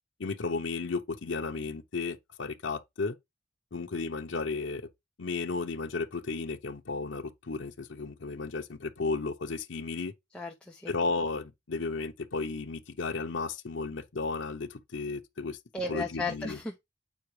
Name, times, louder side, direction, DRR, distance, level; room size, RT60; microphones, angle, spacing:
voice 1, 0.2-3.2 3.7-4.9 5.2-10.1 10.9-15.6 15.9-16.6, left 4 dB, 85° left, 0.8 m, -34 dB
voice 2, 10.3-10.9 15.7-16.8, left 3 dB, 5° left, 0.7 m, -35 dB
8.2 x 4.7 x 3.2 m
head